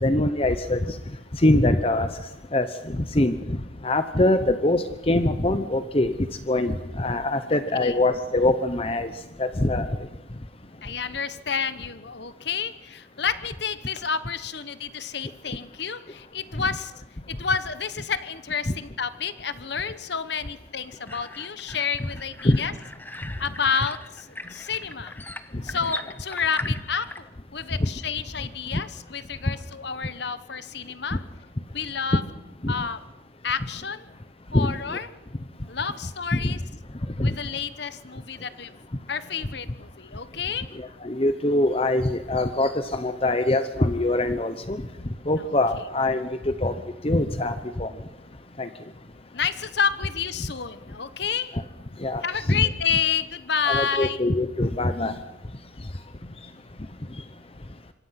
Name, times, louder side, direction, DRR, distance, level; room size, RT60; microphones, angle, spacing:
voice 1, 0.0-0.9 1.4-2.1 2.5-2.7 3.0-3.4 3.8-6.1 6.5-9.1 9.4-9.9 22.0-22.1 22.4-22.6 27.8-27.9 32.6-32.7 34.5-34.7 36.4-36.5 37.2-37.3 41.0-44.8 45.3-46.7 47.0-47.9 48.6-48.7 52.0-52.2 52.5-52.6 53.7-55.1, left 1 dB, 30° left, 10 dB, 0.9 m, -23 dB
voice 2, 7.5-8.0 10.8-16.9 17.3-22.7 23.4-25.2 25.6-27.1 27.5-31.2 31.7-32.2 32.7-33.0 33.4-34.1 34.5-35.1 35.7-36.6 37.2-38.7 39.1-40.7 45.4-45.5 49.3-51.5 52.2-54.2, left 6 dB, 60° left, 13 dB, 1.1 m, -29 dB
sound 1, 21.1-27.2, left 2 dB, 10° left, 1.0 m, -39 dB
26.5 x 23.0 x 5.9 m, 0.99 s
head